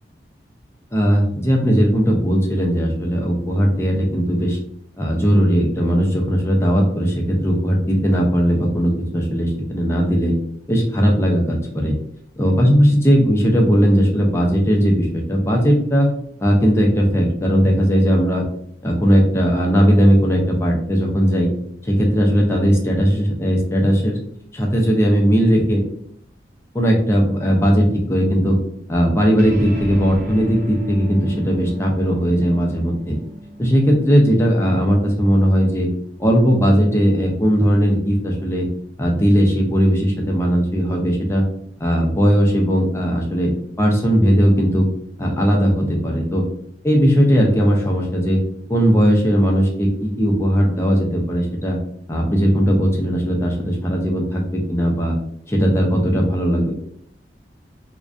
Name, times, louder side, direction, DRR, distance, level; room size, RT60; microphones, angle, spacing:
voice 1, 0.9-4.6 5.0-10.3 10.7-11.9 12.4-16.1 16.4-18.4 18.8-21.5 21.8-24.2 24.5-25.8 26.7-28.6 28.9-33.2 33.6-35.9 36.2-38.7 39.0-41.4 41.8-43.5 43.8-44.9 45.2-46.4 46.8-48.4 48.7-51.8 52.1-55.2 55.5-56.7, equal, 15° left, -1 dB, 0.4 m, -17 dB
sound 1, 29.4-36.2, right 1 dB, 50° right, 0.5 m, -36 dB
2.5 x 2.1 x 2.4 m, 0.68 s
head